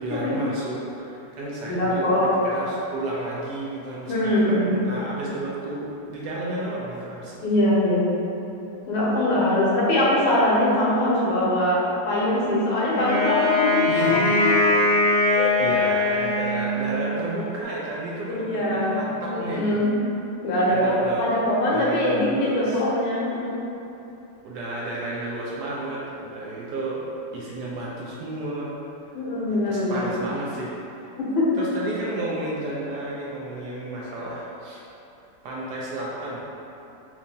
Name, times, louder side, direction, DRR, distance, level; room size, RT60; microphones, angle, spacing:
voice 1, 0.0-2.1 2.4-7.4 13.9-14.5 15.1-19.8 20.7-21.3 21.7-22.8 24.4-27.1 27.3-28.8 29.5-30.7 31.6-34.8 35.4-36.4, right 1 dB, 75° right, -5 dB, 1.0 m, -32 dB
voice 2, 1.7-2.2 4.1-4.7 7.4-8.1 8.9-14.5 15.3-15.6 18.3-19.0 19.3-19.9 20.4-23.6 29.1-30.1 31.2-31.5, left 1 dB, 90° left, -6 dB, 1.6 m, -22 dB
Wind instrument woodwind instrument, 12.9-17.1, left 2 dB, 40° right, 1.2 m, -21 dB
4.5 x 2.4 x 2.6 m, 2.9 s
omnidirectional pair, 2.1 m